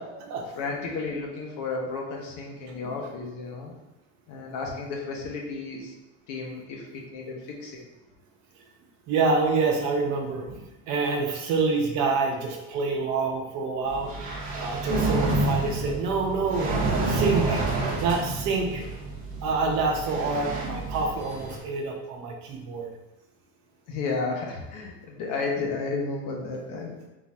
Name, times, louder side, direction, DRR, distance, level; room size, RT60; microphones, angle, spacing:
voice 1, 0.5-3.7 4.3-5.9 6.3-7.8 23.9-27.1, left 4 dB, 60° left, 0 dB, 0.9 m, -33 dB
voice 2, 9.1-10.6 10.9-14.1 14.5-16.7 17.1-17.6 18.0-18.8 19.4-22.9, right 4 dB, 55° right, 0 dB, 0.8 m, -27 dB
sound 1, 13.9-21.6, right 2 dB, 25° right, 0.7 m, -29 dB
3.8 x 2.4 x 4.2 m, 1.0 s
cardioid pair, 165°, 34 cm